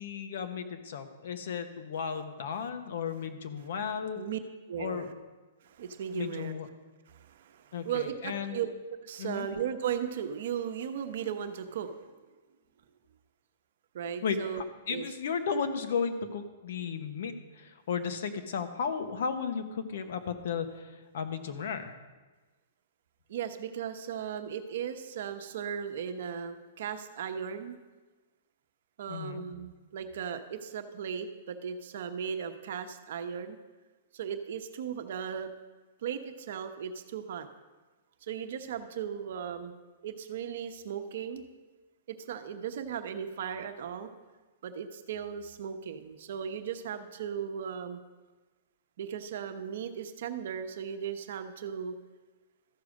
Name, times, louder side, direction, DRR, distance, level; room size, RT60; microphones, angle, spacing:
voice 1, 0.0-4.2 4.8-5.1 6.1-6.7 7.7-8.6 9.2-9.5 14.2-22.0 29.1-29.5, left 6 dB, 65° left, 8 dB, 1.1 m, -34 dB
voice 2, 4.7-5.1 5.6-6.6 7.1-8.7 9.0-12.1 13.9-14.6 14.9-15.1 23.3-27.8 29.0-33.6 34.1-35.5 36.0-37.5 38.2-39.7 40.0-41.4 42.1-44.1 44.6-48.0 49.0-51.9, right 8 dB, 65° right, 7 dB, 0.9 m, -37 dB
13.5 x 4.8 x 6.4 m, 1.3 s
hypercardioid pair, 150°, 0 cm